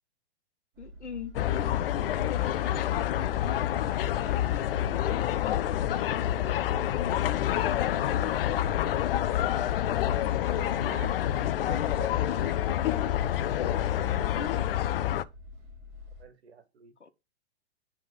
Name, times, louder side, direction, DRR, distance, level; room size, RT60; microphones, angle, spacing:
voice 1, 0.8-1.4 2.1-5.6 6.2-6.6 7.1-8.3 14.0-14.9 17.0-17.1, left 5 dB, 85° left, 1.4 m, -44 dB
sound 1, 0.8-16.3, left 3 dB, 35° right, 3.1 m, -46 dB
sound 2, 1.3-15.2, left 12 dB, 55° left, 0.7 m, -28 dB
voice 2, 6.1-6.7 10.5-12.5 13.5-13.7 16.2-16.9, right 6 dB, 70° right, 1.7 m, -47 dB
10.5 x 3.7 x 5.3 m
figure-of-eight pair, 110°, 34 cm